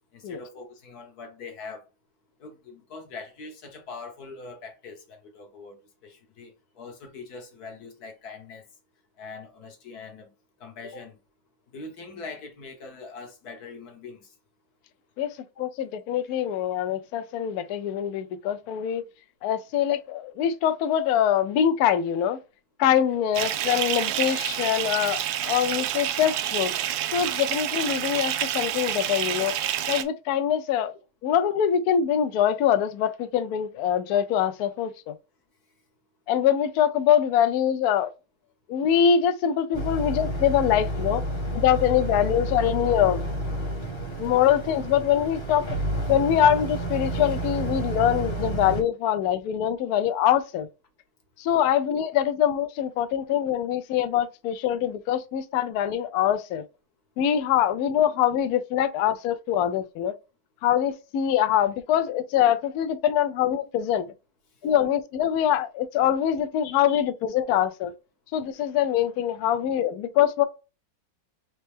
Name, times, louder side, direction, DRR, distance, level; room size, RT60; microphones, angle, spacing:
voice 1, 0.1-1.8 2.4-8.7 9.2-10.3 10.6-11.2 11.7-14.3 15.5-15.6 64.6-64.8, left 4 dB, 55° left, 1.5 m, -42 dB
voice 2, 15.6-19.0 19.4-22.4 22.8-26.7 27.1-29.5 29.9-30.9 31.2-35.1 36.3-38.1 38.7-41.2 41.5-43.3 44.2-45.6 46.1-50.7 51.4-56.6 57.2-60.2 60.6-64.1 64.6-67.9 68.3-70.4, left 9 dB, 75° left, 0.9 m, -24 dB
Bathtub (filling or washing) / Fill (with liquid), 23.3-30.0, right 11 dB, 75° right, 0.9 m, -28 dB
Boat Water vehicle, 39.7-48.8, right 1 dB, 20° left, 0.8 m, -30 dB
4.3 x 3.0 x 3.4 m
omnidirectional pair, 2.1 m